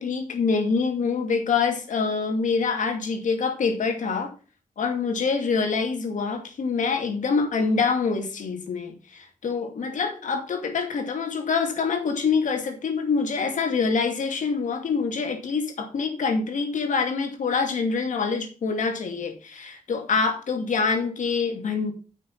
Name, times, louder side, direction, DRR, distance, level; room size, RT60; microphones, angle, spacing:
voice 1, 0.0-4.3 4.8-21.9, left 5 dB, 75° left, 5 dB, 2.3 m, -25 dB
9.2 x 6.4 x 5.7 m, 0.36 s
cardioid pair, 50°, 13 cm